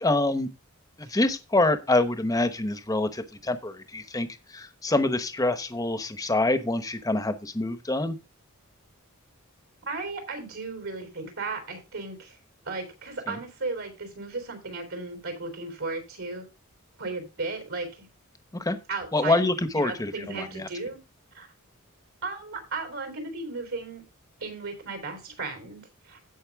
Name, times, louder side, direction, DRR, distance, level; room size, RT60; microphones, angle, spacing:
voice 1, 0.0-0.5 1.0-8.1 13.3-13.4 18.5-18.8 19.1-20.7, left 2 dB, 15° left, 9 dB, 1.0 m, -26 dB
voice 2, 9.9-12.4 12.6-16.4 17.0-18.1 18.9-19.4 19.7-21.0 21.3-21.5 22.2-24.0 24.4-26.2, right 3 dB, 70° right, 6 dB, 3.9 m, -35 dB
16.5 x 5.5 x 3.5 m, 0.28 s
head